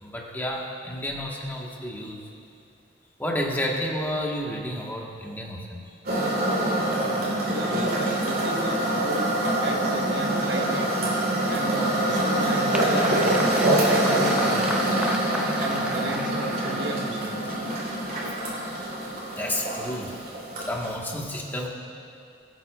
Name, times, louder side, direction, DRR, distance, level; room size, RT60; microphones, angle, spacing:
voice 1, 0.0-2.3 3.2-5.8 18.7-18.9 19.2-20.2 20.5-21.7, equal, 10° left, -2 dB, 1.3 m, -31 dB
sound 1, 6.0-20.9, right 1 dB, 55° right, 3.0 m, -25 dB
voice 2, 7.4-11.0 11.4-15.2 15.6-17.4, right 2 dB, 80° right, 2 dB, 1.1 m, -36 dB
Applause, 11.8-17.1, right 1 dB, 5° right, 0.6 m, -35 dB
21.5 x 8.9 x 2.4 m, 2.6 s
head